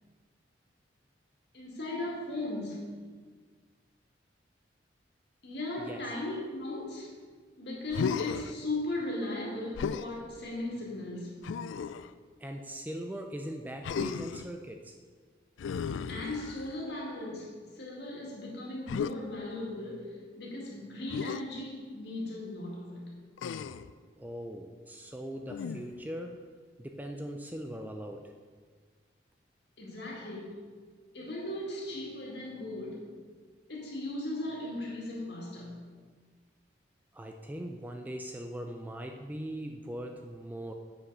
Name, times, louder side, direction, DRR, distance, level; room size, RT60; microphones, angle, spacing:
voice 1, 1.5-2.9 5.4-7.1 7.6-11.4 16.1-23.0 29.8-30.6 31.1-33.1 33.7-35.8, left 1 dB, 60° left, -3 dB, 2.2 m, -37 dB
Human voice, 7.9-8.5 9.7-10.1 11.4-12.1 13.8-14.5 15.6-16.8 18.9-19.1 21.1-21.4 23.4-23.9 25.5-26.0, left 6 dB, 80° left, 0.3 m, -34 dB
voice 2, 12.4-15.0 24.2-26.5 26.8-28.3 37.1-40.7, equal, 10° right, 4 dB, 0.4 m, -40 dB
8.0 x 5.8 x 5.4 m, 1.6 s
head